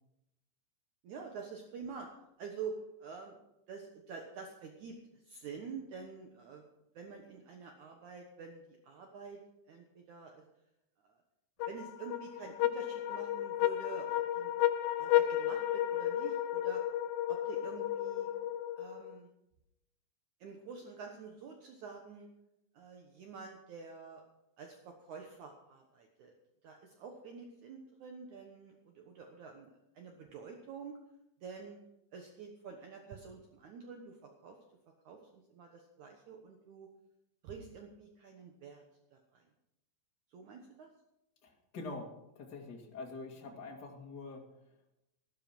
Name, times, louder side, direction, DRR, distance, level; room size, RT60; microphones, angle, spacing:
voice 1, 1.0-2.1 2.4-3.4 3.7-6.6 6.9-9.4 9.7-10.4 11.0-11.2 11.7-14.5 15.0-16.8 17.3-18.3 18.8-19.3 20.4-22.3 22.7-24.2 24.6-26.3 26.6-31.0 31.4-31.8 32.1-34.6 35.0-36.9 37.4-38.8 39.1-39.4 40.3-40.9, right 5 dB, 65° right, 3 dB, 2.4 m, -48 dB
sound 1, 11.6-19.2, left 12 dB, 85° left, 1.6 m, -33 dB
voice 2, 41.4-44.5, left 3 dB, 30° left, 0 dB, 2.3 m, -45 dB
12.5 x 12.5 x 6.1 m, 0.86 s
omnidirectional pair, 4.2 m